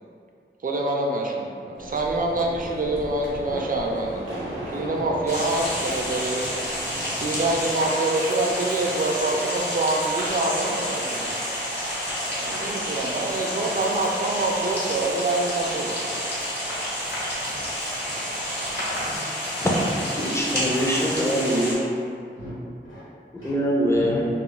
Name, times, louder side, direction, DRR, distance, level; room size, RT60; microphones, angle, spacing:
voice 1, 0.6-4.3 4.7-6.4 6.9-11.3 12.4-16.0, right 2 dB, 45° right, 0 dB, 0.4 m, -26 dB
sound 1, 1.8-7.6, right 1 dB, 85° right, 0.6 m, -36 dB
sound 2, 5.3-21.7, equal, 55° left, 1.0 m, -29 dB
voice 2, 17.1-17.7 18.0-18.2 18.8-19.3 19.6-19.8 20.4-20.7 22.3-22.5 22.8-23.0 23.4-23.5 23.9-24.3, left 1 dB, 85° left, -12 dB, 1.0 m, -40 dB
voice 3, 20.1-21.7 23.4-24.2, equal, 15° left, -3 dB, 0.5 m, -23 dB
2.4 x 2.0 x 3.6 m, 2.3 s
wide cardioid pair, 40°, 20 cm